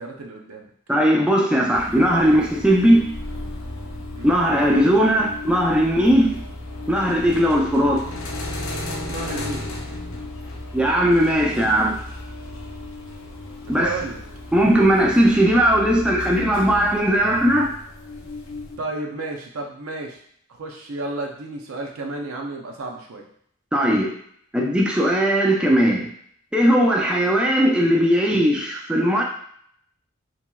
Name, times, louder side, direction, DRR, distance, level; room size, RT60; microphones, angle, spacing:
voice 1, 0.0-0.7 4.1-4.3 9.1-9.7 13.6-14.2 18.8-20.2 20.5-23.3, right 2 dB, 80° right, 1 dB, 0.5 m, -32 dB
voice 2, 0.9-3.0 4.2-6.4 6.9-8.0 10.7-12.0 13.7-13.9 14.5-17.7 23.7-24.1 24.5-26.1 26.5-29.2, equal, 5° right, -2 dB, 0.3 m, -18 dB
sound 1, 1.7-18.8, left 2 dB, 70° left, 0.5 m, -34 dB
2.9 x 2.8 x 2.2 m, 0.65 s
head